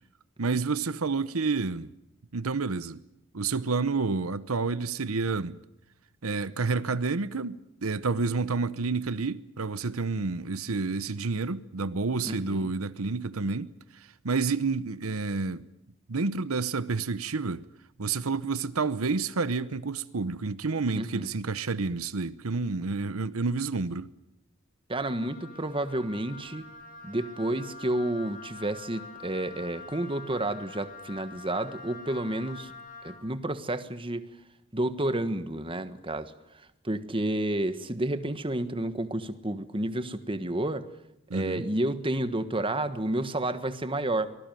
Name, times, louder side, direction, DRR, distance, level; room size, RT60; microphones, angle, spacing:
voice 1, 0.4-1.9 2.3-3.0 3.3-5.6 6.2-15.6 16.1-17.6 18.0-24.1 41.3-41.7, right 4 dB, 85° right, 0.9 m, -29 dB
voice 2, 12.2-12.7 20.9-21.3 24.9-26.6 27.0-32.7 33.0-34.3 34.7-40.9 41.3-44.4, right 1 dB, 25° right, 1.4 m, -30 dB
Wind instrument woodwind instrument, 25.0-33.3, left 4 dB, 40° left, 5.6 m, -46 dB
24.5 x 19.5 x 9.1 m
head